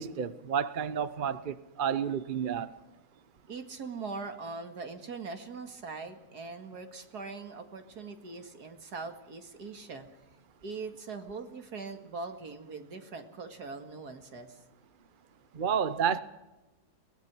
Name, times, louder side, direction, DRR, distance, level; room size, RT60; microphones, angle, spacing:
voice 1, 0.0-2.7 15.5-16.2, right 7 dB, 40° right, 0.8 m, -30 dB
voice 2, 3.5-10.1 10.6-14.6, right 4 dB, 70° right, 2.5 m, -41 dB
22.5 x 19.5 x 6.2 m
omnidirectional pair, 1.8 m